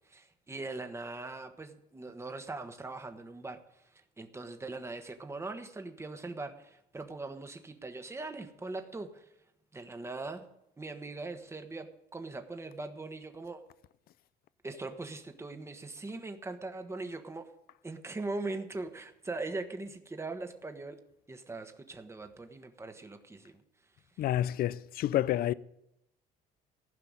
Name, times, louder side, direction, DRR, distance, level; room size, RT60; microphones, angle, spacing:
voice 1, 0.0-3.6 4.2-9.3 9.7-10.5 10.8-13.6 14.6-17.5 17.8-21.0 21.3-23.6, right 3 dB, 15° right, 1.3 m, -41 dB
voice 2, 24.2-25.5, left 12 dB, 65° left, 0.5 m, -29 dB
15.5 x 5.8 x 9.5 m
cardioid pair, 110°, 17 cm